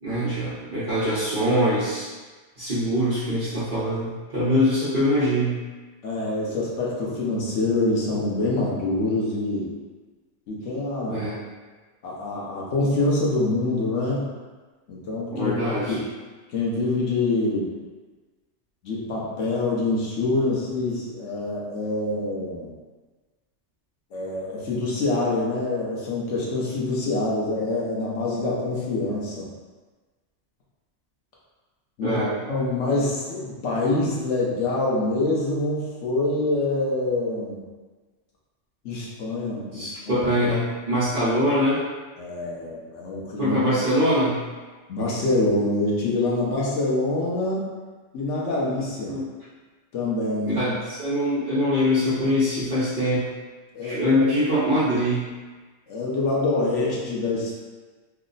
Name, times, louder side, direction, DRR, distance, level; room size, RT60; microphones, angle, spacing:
voice 1, 0.0-2.1 2.6-5.6 11.1-11.4 15.3-16.0 32.0-32.3 39.7-41.8 43.4-44.4 49.1-49.2 50.5-53.3 53.8-55.3, equal, 50° right, -13 dB, 1.0 m, -23 dB
voice 2, 6.0-9.7 10.5-11.2 12.0-14.3 14.9-15.5 15.9-16.0 16.5-17.7 18.8-22.7 24.1-29.5 32.0-32.2 32.5-37.6 38.8-40.3 42.2-43.6 44.9-47.7 48.1-49.2 49.9-50.7 53.7-54.2 55.9-57.6, left 2 dB, 80° left, -5 dB, 1.1 m, -25 dB
3.2 x 2.0 x 3.8 m, 1.3 s
omnidirectional pair, 1.2 m